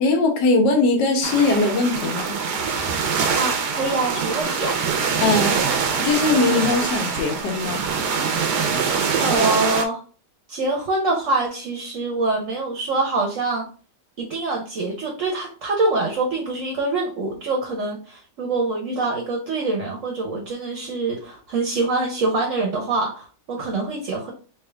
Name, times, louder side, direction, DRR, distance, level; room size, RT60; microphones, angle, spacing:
voice 1, 0.0-2.3 5.2-5.6 6.0-7.8, left 3 dB, 85° left, 3 dB, 1.5 m, -20 dB
sound 1, 1.2-9.9, right 5 dB, 80° right, 1.2 m, -24 dB
voice 2, 3.4-4.9 9.2-10.0 10.5-13.7 14.2-24.3, right 3 dB, 55° right, 1 dB, 1.0 m, -25 dB
3.5 x 2.8 x 3.3 m, 0.37 s
omnidirectional pair, 1.8 m